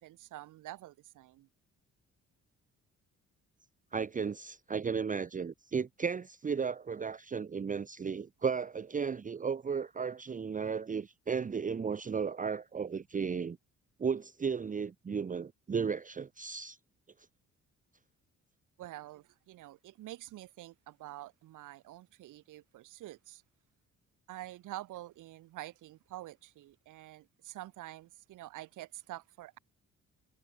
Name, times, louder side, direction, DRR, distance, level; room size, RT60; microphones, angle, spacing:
voice 1, 0.0-1.5 18.8-23.4 24.3-29.6, right 15 dB, 90° right, 7.8 m, -47 dB
voice 2, 3.9-13.6 14.0-16.8, right 6 dB, 25° right, 0.8 m, -34 dB
cardioid pair, 90°, 30 cm